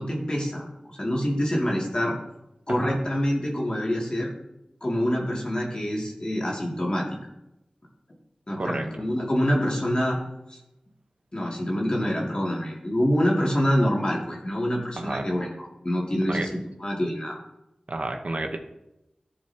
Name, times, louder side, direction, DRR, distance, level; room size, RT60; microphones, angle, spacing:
voice 1, 0.0-2.1 2.7-4.3 4.8-7.1 8.5-10.2 10.5-10.6 11.3-17.4, equal, 40° left, -3 dB, 2.4 m, -26 dB
voice 2, 15.0-15.3 16.3-16.5 17.9-18.6, right 2 dB, 65° right, 4 dB, 0.9 m, -30 dB
13.0 x 6.8 x 2.9 m, 0.89 s
wide cardioid pair, 45°, 2 cm